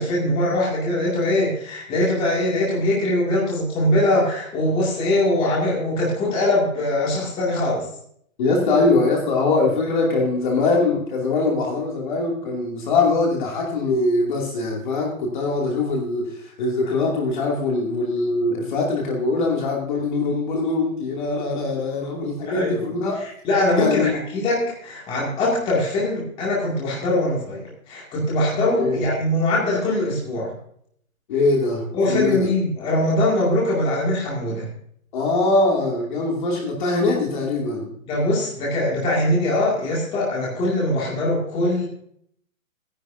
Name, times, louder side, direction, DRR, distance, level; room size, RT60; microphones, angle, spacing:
voice 1, 0.0-7.9 22.5-30.5 31.9-34.7 38.1-41.9, left 1 dB, 15° left, -4 dB, 2.3 m, -22 dB
voice 2, 8.4-23.2 23.8-24.1 28.8-29.0 31.3-32.5 35.1-37.9, left 3 dB, 35° left, -1 dB, 2.6 m, -22 dB
16.0 x 10.5 x 2.6 m, 0.66 s
hypercardioid pair, 165°, 41 cm